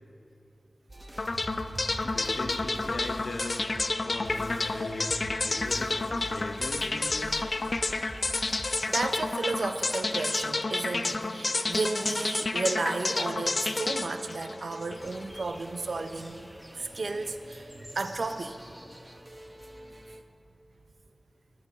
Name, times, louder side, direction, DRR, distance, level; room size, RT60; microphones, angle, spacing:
sound 1, 0.9-20.2, right 1 dB, 35° right, 0.8 m, -46 dB
voice 1, 1.2-7.5, left 2 dB, 85° left, 5 dB, 0.8 m, -39 dB
sound 2, 1.2-15.3, left 3 dB, 60° left, 0.4 m, -30 dB
voice 2, 8.5-18.6, right 3 dB, 80° right, 8 dB, 0.5 m, -33 dB
sound 3, 14.9-19.9, equal, 5° left, 0.8 m, -51 dB
14.0 x 13.0 x 2.8 m, 2.9 s
wide cardioid pair, 50°, 0 cm